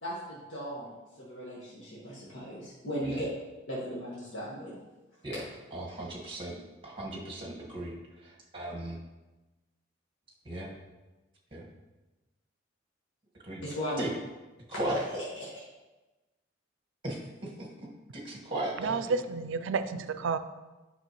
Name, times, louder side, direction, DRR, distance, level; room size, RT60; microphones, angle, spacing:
voice 1, 0.0-3.3 3.7-4.8 13.6-14.0 14.7-15.6, equal, 70° left, -7 dB, 1.7 m, -37 dB
voice 2, 5.7-6.6 6.8-7.9 8.2-9.0 10.5-10.7 11.5-11.6 13.4-13.6 14.0-14.1 14.7-15.0 17.0-17.9 18.1-19.0, right 1 dB, 25° right, -3 dB, 1.7 m, -36 dB
voice 3, 18.8-20.4, right 5 dB, 75° right, 11 dB, 0.4 m, -30 dB
8.1 x 5.9 x 3.1 m, 1.1 s
head